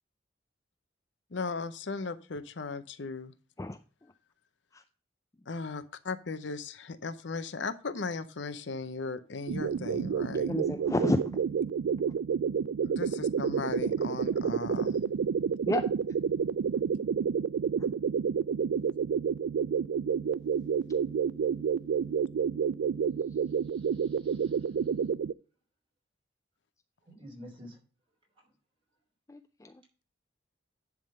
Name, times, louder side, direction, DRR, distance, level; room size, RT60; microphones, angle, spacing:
voice 1, 1.3-3.3 5.5-10.5 12.8-15.1, left 4 dB, 70° left, 0.7 m, -37 dB
sound 1, 9.5-25.3, right 6 dB, 85° right, 0.3 m, -29 dB
voice 2, 10.5-11.2 15.7-15.9 29.3-29.7, left 1 dB, 15° left, 0.4 m, -30 dB
voice 3, 23.6-24.9 27.0-27.8, equal, 25° right, 4.0 m, -50 dB
10.5 x 3.7 x 6.6 m
head